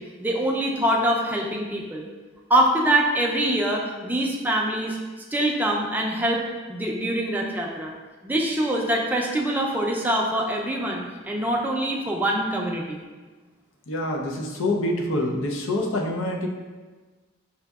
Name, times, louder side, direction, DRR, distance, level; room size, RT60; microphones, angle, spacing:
voice 1, 0.0-2.1 2.5-5.0 5.3-7.9 8.2-13.0, right 1 dB, 10° right, -1 dB, 0.4 m, -24 dB
voice 2, 13.9-16.5, left 1 dB, 80° left, 0 dB, 0.6 m, -26 dB
5.7 x 2.6 x 2.3 m, 1.3 s
head